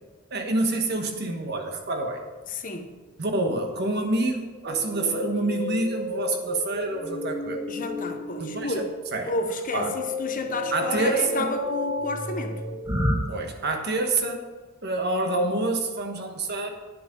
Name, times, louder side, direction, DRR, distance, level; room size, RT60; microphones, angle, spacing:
voice 1, 0.3-2.2 3.2-7.6 8.4-8.7 9.1-9.3 9.7-10.0 10.7-11.5 13.3-14.4 14.8-16.7, right 2 dB, 50° right, 4 dB, 1.3 m, -27 dB
voice 2, 2.5-2.9 7.7-8.9 9.3-12.6, left 2 dB, 40° left, 6 dB, 0.9 m, -31 dB
sound 1, 4.7-13.1, left 1 dB, 15° right, 1.6 m, -31 dB
9.9 x 7.5 x 5.3 m, 1.3 s
head